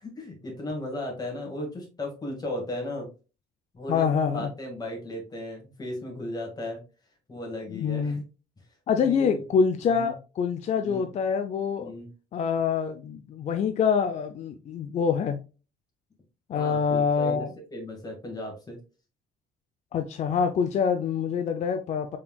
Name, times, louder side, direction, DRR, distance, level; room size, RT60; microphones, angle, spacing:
voice 1, 0.0-3.1 3.7-6.8 7.3-8.2 9.0-9.5 9.9-10.1 10.8-11.0 11.8-12.1 16.5-18.8, left 1 dB, 25° left, 1.8 m, -36 dB
voice 2, 3.9-4.5 7.7-8.2 8.9-11.9 12.3-15.4 16.5-17.5 19.9-22.2, left 6 dB, 45° left, 0.4 m, -25 dB
4.2 x 3.7 x 2.3 m
cardioid pair, 110°, 17 cm